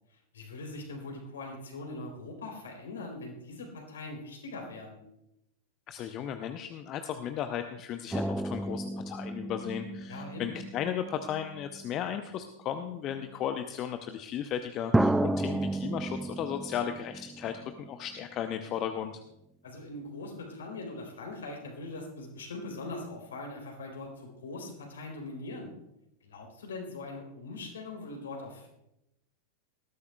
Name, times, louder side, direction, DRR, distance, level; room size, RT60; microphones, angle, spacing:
voice 1, 0.3-5.0 10.1-10.5 19.6-25.7 26.2-28.7, left 2 dB, 65° left, 2 dB, 3.6 m, -41 dB
voice 2, 5.9-19.1, left 9 dB, 35° left, 8 dB, 0.7 m, -35 dB
sound 1, 8.1-12.0 12.9-13.0 14.9-18.3 18.5-18.6, right 1 dB, 5° right, 0.3 m, -32 dB
19.0 x 13.0 x 2.3 m, 0.85 s
figure-of-eight pair, 90°, 0 cm